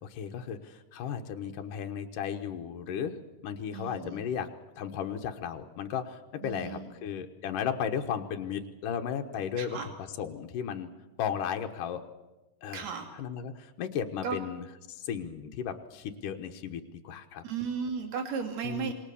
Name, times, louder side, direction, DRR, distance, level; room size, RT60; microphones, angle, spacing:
voice 1, 0.0-3.2 3.4-4.5 4.8-9.9 10.2-10.9 11.2-12.0 12.6-12.9 13.2-17.4 18.6-18.9, left 8 dB, 90° left, 5 dB, 2.8 m, -35 dB
voice 2, 3.7-4.2 6.4-7.0 9.6-9.9 12.7-13.1 14.2-14.4 17.4-18.9, right 6 dB, 60° right, 5 dB, 3.8 m, -35 dB
27.0 x 21.5 x 7.0 m, 1.1 s
omnidirectional pair, 3.7 m